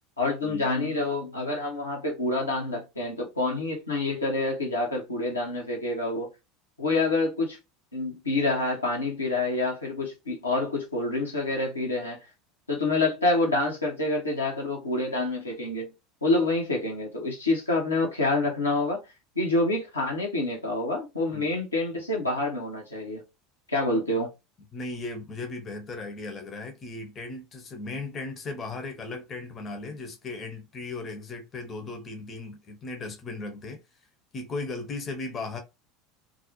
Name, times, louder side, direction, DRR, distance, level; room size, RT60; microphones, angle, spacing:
voice 1, 0.2-6.3 6.8-7.6 7.9-12.2 12.7-15.9 16.2-19.0 19.4-23.2 23.7-24.3, left 2 dB, 85° left, 0.8 m, -27 dB
voice 2, 24.7-33.8 34.3-35.6, left 3 dB, 30° left, 0.6 m, -36 dB
2.4 x 2.0 x 2.8 m
figure-of-eight pair, 75°, 0 cm